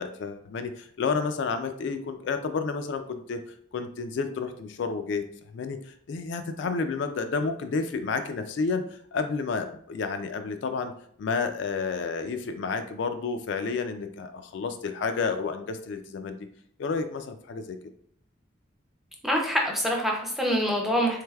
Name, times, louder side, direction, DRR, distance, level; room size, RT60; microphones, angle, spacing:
voice 1, 0.0-3.4 3.7-5.2 5.5-10.9 11.2-16.5 16.8-17.8, left 4 dB, 65° left, 7 dB, 0.3 m, -30 dB
voice 2, 19.2-21.2, equal, ahead, 1 dB, 0.4 m, -25 dB
3.3 x 3.2 x 2.3 m, 0.62 s
head